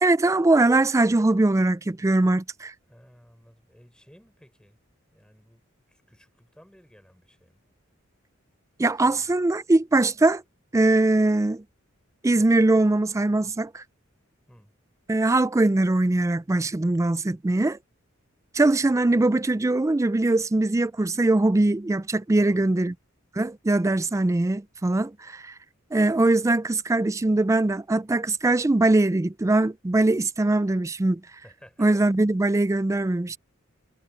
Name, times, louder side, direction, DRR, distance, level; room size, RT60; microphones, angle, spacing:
voice 1, 0.0-2.7 8.8-10.4 10.7-11.6 12.2-13.8 15.1-17.8 18.5-22.9 23.4-25.5 25.9-31.2 31.8-33.4, right 2 dB, 15° right, 0.4 m, -21 dB
voice 2, 2.9-4.8 5.1-7.6 9.1-9.3 14.5-14.7 22.3-22.7 31.4-31.9, equal, 5° left, 5.3 m, -54 dB
head